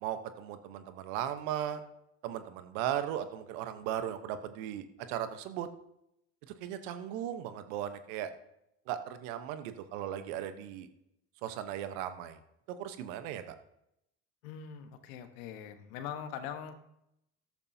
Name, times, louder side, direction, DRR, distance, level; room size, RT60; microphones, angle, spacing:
voice 1, 0.0-1.8 2.2-5.7 6.6-8.3 8.9-10.9 11.4-12.4 12.8-13.6, right 10 dB, 75° right, 10 dB, 1.1 m, -37 dB
voice 2, 14.4-16.8, left 8 dB, 75° left, 8 dB, 1.4 m, -42 dB
13.5 x 11.5 x 2.8 m, 0.81 s
hypercardioid pair, 65°, 41 cm